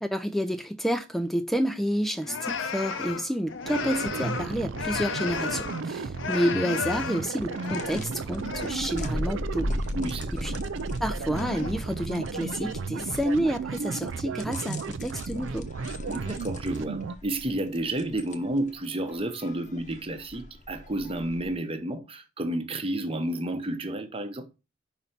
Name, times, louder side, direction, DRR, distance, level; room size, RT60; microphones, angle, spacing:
voice 1, 0.0-9.8 10.4-10.5 11.0-15.7, equal, ahead, 0.4 m, -29 dB
sound 1, 2.2-5.9 6.1-8.8 9.1-9.5 10.5-10.9 11.2-12.0, left 6 dB, 75° left, 0.7 m, -34 dB
sound 2, 3.6-17.2, right 5 dB, 85° right, 0.4 m, -34 dB
sound 3, 7.4-21.5, left 1 dB, 40° left, 0.8 m, -38 dB
voice 2, 9.9-10.4 16.1-24.5, right 1 dB, 30° right, 0.9 m, -31 dB
5.4 x 4.1 x 5.7 m
head